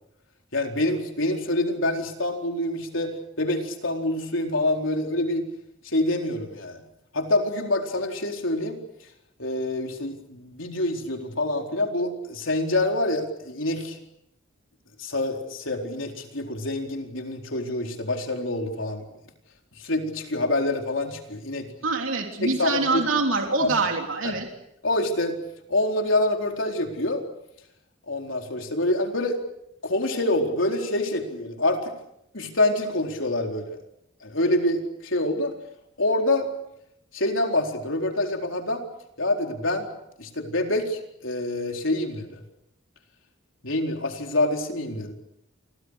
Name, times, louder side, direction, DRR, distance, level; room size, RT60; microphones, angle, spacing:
voice 1, 0.5-5.5 5.8-6.8 7.1-8.8 9.4-14.0 15.0-19.1 19.8-21.7 22.4-23.0 23.5-23.7 24.2-24.3 24.8-25.4 25.7-27.2 28.1-29.4 29.8-31.9 32.3-33.8 34.2-35.5 36.0-36.5 37.1-38.8 39.2-39.9 40.2-42.4 43.6-45.1, left 1 dB, 70° left, 3 dB, 4.3 m, -26 dB
voice 2, 21.8-24.5, right 3 dB, 80° right, 3 dB, 3.6 m, -25 dB
29.5 x 24.5 x 6.6 m, 0.81 s
head